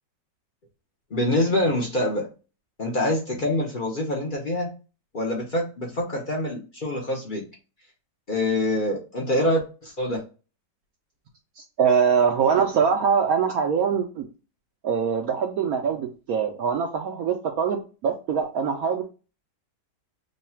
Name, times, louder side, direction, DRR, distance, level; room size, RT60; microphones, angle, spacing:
voice 1, 1.1-2.3 2.8-4.7 5.1-7.4 8.3-10.2, left 1 dB, 45° left, -1 dB, 0.6 m, -25 dB
voice 2, 11.6-14.3 14.8-19.0, right 6 dB, 70° right, 2 dB, 0.9 m, -23 dB
3.2 x 2.3 x 4.2 m, 0.33 s
omnidirectional pair, 1.9 m